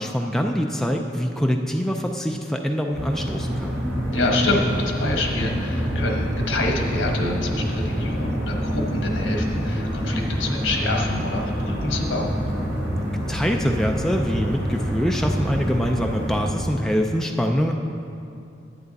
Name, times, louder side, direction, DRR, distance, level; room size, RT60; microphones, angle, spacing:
voice 1, 0.0-3.8 13.3-17.7, equal, ahead, 2 dB, 0.3 m, -24 dB
sound 1, 2.9-16.5, equal, 65° right, 2.5 m, -26 dB
voice 2, 4.1-12.3, left 2 dB, 85° left, 1 dB, 1.3 m, -27 dB
10.5 x 8.7 x 4.1 m, 2.6 s
head